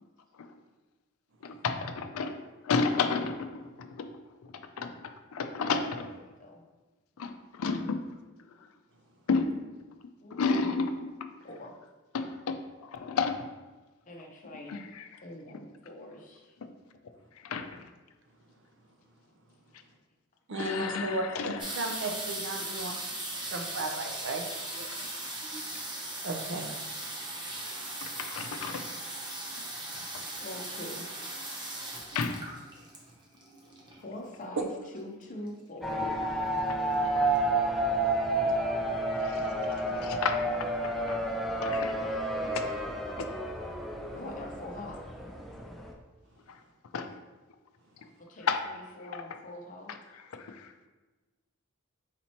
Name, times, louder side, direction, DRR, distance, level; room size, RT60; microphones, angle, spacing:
voice 1, 1.4-2.3 2.6-3.5 3.8-4.0 4.8-6.1 7.2-8.0 9.3-9.5 10.3-11.3 12.1-13.5 14.7-15.0 17.4-17.8 20.5-21.7 28.0-28.8 32.1-32.4 37.1-37.3 39.2-39.4 39.9-40.4 40.8-41.2 41.6-42.7 43.2-43.3 46.9-47.1 48.5-48.6 50.3-50.7, left 4 dB, 80° left, 7 dB, 0.4 m, -32 dB
voice 2, 6.1-6.6 10.2-10.9 11.4-11.7 14.1-14.7 15.2-16.5 30.4-31.1 34.0-36.1 40.1-40.3 44.1-45.0 48.3-50.0, left 1 dB, 35° left, -1 dB, 0.6 m, -43 dB
voice 3, 20.5-21.3 21.7-22.9 23.3-24.4 24.8-24.9 25.5-25.6 26.2-26.6, right 2 dB, 55° right, 3 dB, 0.6 m, -34 dB
sound 1, 21.6-34.1 35.0-35.1 35.2-35.6 36.0-36.5 37.1-37.2 37.4-37.5, right 1 dB, 20° right, 0.7 m, -38 dB
sound 2, 35.8-45.9, right 1 dB, ahead, 0.3 m, -30 dB
4.1 x 2.9 x 4.2 m, 1.2 s
head